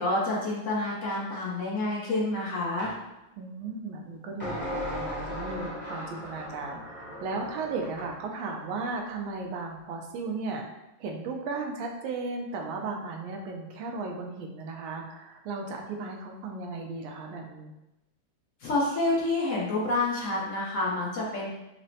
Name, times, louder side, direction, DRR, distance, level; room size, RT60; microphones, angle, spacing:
voice 1, 0.0-2.9 18.6-21.5, left 2 dB, 60° left, -5 dB, 0.8 m, -28 dB
sound 1, 2.8-3.0 4.4-8.2, equal, 10° left, 0.7 m, -37 dB
voice 2, 3.4-10.7 11.0-17.7, right 3 dB, 80° right, 1 dB, 1.4 m, -35 dB
6.0 x 2.1 x 2.7 m, 0.94 s
omnidirectional pair, 2.2 m